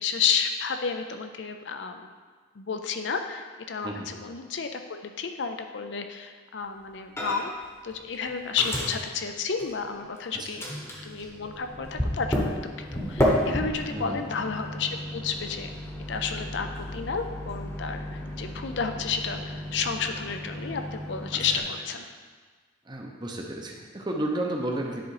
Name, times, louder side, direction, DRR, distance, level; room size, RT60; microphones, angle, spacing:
voice 1, 0.0-2.1 2.6-7.5 7.8-10.6 11.0-12.7 13.1-15.7 16.1-22.0, left 6 dB, 60° left, 6 dB, 0.5 m, -31 dB
Microwave oven, 7.2-7.7 7.9-10.2 10.6-21.6, equal, 15° left, 1.0 m, -32 dB
voice 2, 13.9-14.2 21.3-21.6 22.9-25.0, right 1 dB, 20° right, 1 dB, 0.7 m, -32 dB
10.0 x 3.8 x 4.8 m, 1.5 s
head